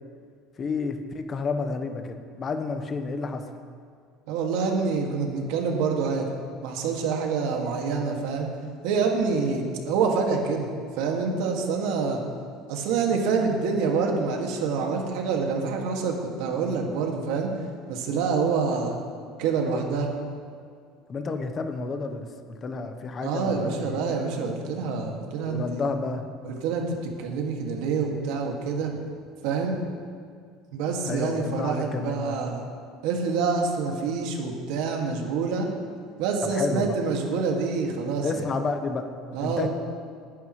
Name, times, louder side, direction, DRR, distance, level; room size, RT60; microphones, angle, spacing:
voice 1, 0.6-3.4 21.1-24.0 25.4-26.3 31.0-32.4 36.5-36.9 38.2-39.1 39.4-39.7, left 4 dB, 25° left, 6 dB, 1.0 m, -30 dB
voice 2, 4.3-6.3 6.6-8.5 8.8-10.7 11.0-12.2 12.7-17.5 17.9-19.0 19.4-20.1 23.2-25.8 26.4-29.0 29.4-29.8 30.7-32.6 33.0-35.7 36.2-38.4 39.3-39.7, right 5 dB, 70° right, 1 dB, 2.2 m, -26 dB
20.0 x 11.0 x 3.3 m, 2.2 s
cardioid pair, 160°, 0 cm